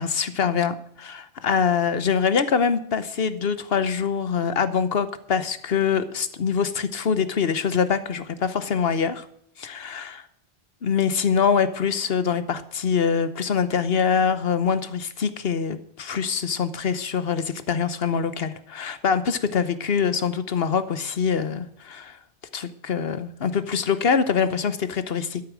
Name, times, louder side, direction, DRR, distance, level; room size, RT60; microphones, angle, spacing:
voice 1, 0.0-9.2 9.6-10.2 10.8-22.2 22.5-25.4, left 6 dB, 60° left, 12 dB, 1.2 m, -24 dB
12.5 x 8.7 x 6.2 m, 0.72 s
omnidirectional pair, 1.2 m